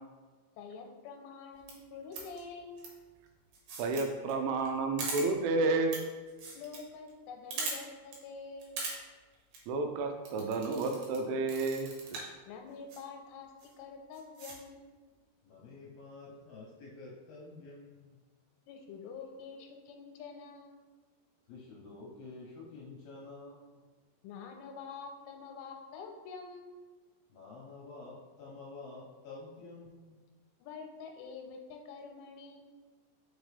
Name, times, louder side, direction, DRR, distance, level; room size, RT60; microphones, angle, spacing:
voice 1, 0.6-2.8 6.5-8.8 12.5-13.5 13.8-14.9 18.7-20.8 24.2-26.8 30.6-32.7, left 5 dB, 90° left, 3 dB, 3.1 m, -46 dB
sound 1, 1.6-1.7 2.1-2.4 2.8-2.9 3.5-4.0 4.3-4.4 4.6-4.7 5.0-5.3 5.9-6.0 6.3-6.8 7.1-7.2 7.5-7.7 8.1-8.2 8.6-8.9 9.3-9.6 10.3-11.2 11.5-12.3 12.9-13.0 13.6-13.7 14.1-14.6, right 3 dB, 70° right, 2.8 m, -39 dB
voice 2, 3.8-6.0 9.7-11.9, right 3 dB, 85° right, 4 dB, 3.0 m, -31 dB
voice 3, 15.4-18.1 21.5-23.7 27.3-30.1, left 3 dB, 75° left, -5 dB, 2.3 m, -49 dB
5.9 x 5.1 x 3.2 m, 1.3 s
omnidirectional pair, 5.6 m